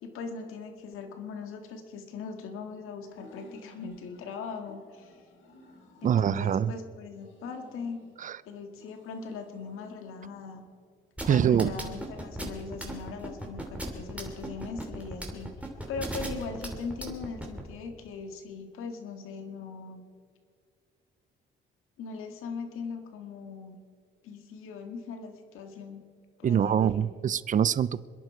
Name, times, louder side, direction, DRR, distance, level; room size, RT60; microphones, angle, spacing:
voice 1, 0.0-5.1 6.0-8.0 8.5-10.6 11.2-15.5 15.9-20.0 22.0-23.8 24.2-26.0 26.4-27.1, left 5 dB, 90° left, 1.9 m, -40 dB
scrapped troll sounds, 3.0-4.2 4.6-6.7 7.1-8.3 8.8-10.7 11.2-12.4, left 1 dB, 65° left, 2.6 m, -53 dB
voice 2, 6.0-6.7 8.2-8.4 11.3-11.7 26.4-28.0, right 9 dB, 40° right, 0.5 m, -24 dB
sound 1, 11.2-17.6, right 1 dB, 5° right, 2.9 m, -36 dB
27.0 x 11.0 x 4.9 m
cardioid pair, 115°, 21 cm